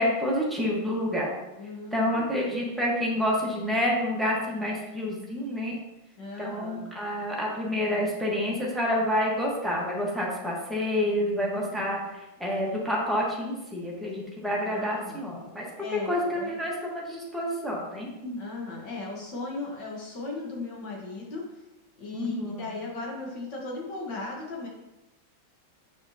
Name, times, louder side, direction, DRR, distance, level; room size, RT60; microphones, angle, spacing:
voice 1, 0.0-1.3 1.9-5.7 6.4-15.7 15.9-18.4 22.1-22.6, left 1 dB, ahead, -4 dB, 0.7 m, -28 dB
voice 2, 1.6-2.3 6.2-6.8 12.5-12.8 14.6-15.2 15.8-16.7 18.4-21.6 22.0-24.7, left 3 dB, 65° left, -2 dB, 1.8 m, -37 dB
6.1 x 5.9 x 2.8 m, 0.97 s
omnidirectional pair, 2.1 m